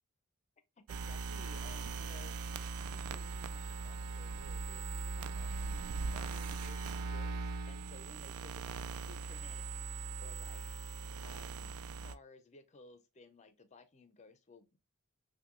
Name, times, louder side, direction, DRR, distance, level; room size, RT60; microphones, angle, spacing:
voice 1, 0.8-10.9 11.2-14.8, left 3 dB, 30° left, 0.5 m, -58 dB
sound 1, 0.9-12.2, right 4 dB, 85° right, 0.3 m, -40 dB
5.7 x 2.2 x 2.4 m
head